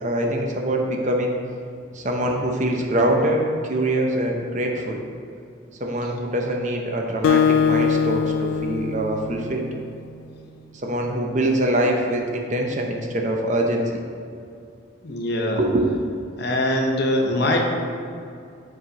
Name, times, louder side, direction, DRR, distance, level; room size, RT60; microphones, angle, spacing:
voice 1, 0.0-1.4 1.9-5.0 5.8-9.7 10.7-14.0 15.6-15.9, right 1 dB, 40° right, 1 dB, 0.6 m, -24 dB
Acoustic guitar, 7.2-10.0, left 6 dB, 85° left, 0.3 m, -22 dB
voice 2, 15.0-15.6 16.4-17.6, left 1 dB, 55° left, 1 dB, 0.8 m, -22 dB
7.0 x 4.8 x 3.9 m, 2.4 s
head